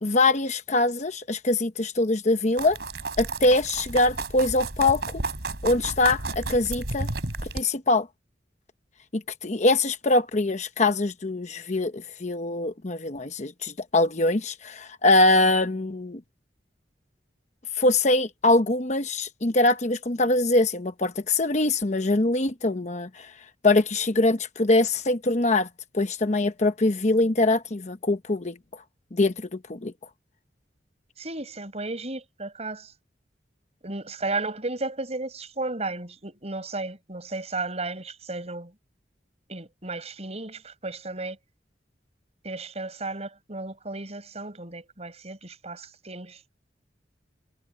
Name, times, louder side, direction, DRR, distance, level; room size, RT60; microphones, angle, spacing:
voice 1, 0.0-2.8 3.2-5.2 5.6-7.1 7.5-8.1 9.1-16.2 17.8-23.3 23.6-25.7 25.9-28.6 29.1-29.9, left 2 dB, 40° left, 1.0 m, -23 dB
sound 1, 2.6-7.6, right 3 dB, 65° right, 3.6 m, -32 dB
voice 2, 31.2-32.9 33.8-38.7 39.5-41.4 42.4-46.4, right 2 dB, 35° right, 6.1 m, -34 dB
head